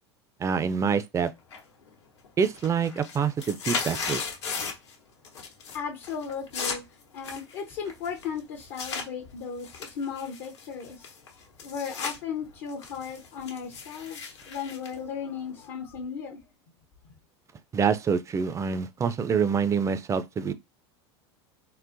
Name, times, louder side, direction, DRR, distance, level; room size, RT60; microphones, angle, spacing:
voice 1, 0.4-1.3 2.4-4.2 17.7-20.5, right 6 dB, 20° right, 0.3 m, -26 dB
sound 1, 1.5-1.9 2.2-4.9 5.2-5.8 6.0-9.1 9.6-12.2 12.5-15.7, left 5 dB, 80° left, 1.0 m, -36 dB
voice 2, 5.7-6.8 7.1-11.1 11.6-16.4, left 6 dB, 60° left, 0.6 m, -36 dB
3.7 x 2.1 x 2.5 m
hypercardioid pair, 90°, 14 cm